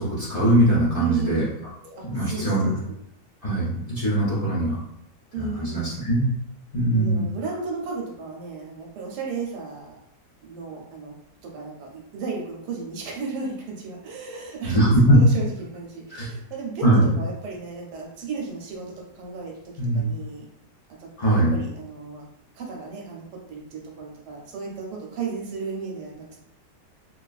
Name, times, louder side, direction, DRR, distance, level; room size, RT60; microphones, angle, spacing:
voice 1, 0.0-1.4 2.0-2.7 3.4-4.7 5.4-6.2 6.7-7.2 14.6-15.2 16.1-16.3 16.8-17.0 19.8-20.0 21.2-21.5, right 1 dB, 70° left, -10 dB, 0.3 m, -21 dB
voice 2, 1.0-1.5 2.0-2.8 5.3-6.0 6.9-10.0 10.4-11.1 11.4-18.9 19.1-20.5 21.0-22.2 22.5-23.2 23.5-26.4, right 5 dB, 85° right, -1 dB, 1.2 m, -34 dB
2.9 x 2.3 x 2.3 m, 0.75 s
omnidirectional pair, 1.8 m